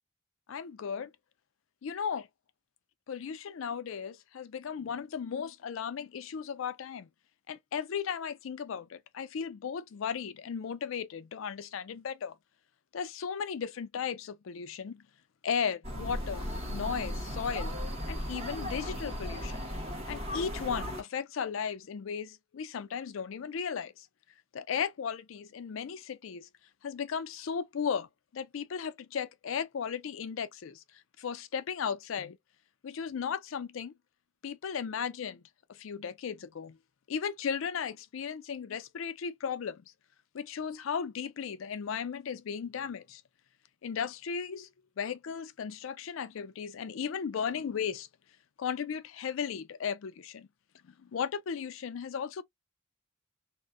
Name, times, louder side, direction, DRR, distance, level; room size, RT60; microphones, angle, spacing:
voice 1, 0.5-1.1 1.8-2.3 3.1-7.1 7.5-12.4 12.9-15.0 15.4-17.8 18.1-19.7 20.1-24.1 24.5-26.5 26.8-28.1 28.3-30.8 31.2-32.4 32.8-33.9 34.4-35.4 35.7-36.8 37.1-39.8 40.3-43.2 43.8-44.7 45.0-48.1 48.6-50.5 50.8-52.4, left 7 dB, 75° left, 0.4 m, -36 dB
sound 1, 15.8-21.0, equal, 30° right, 0.9 m, -36 dB
2.5 x 2.1 x 2.4 m
head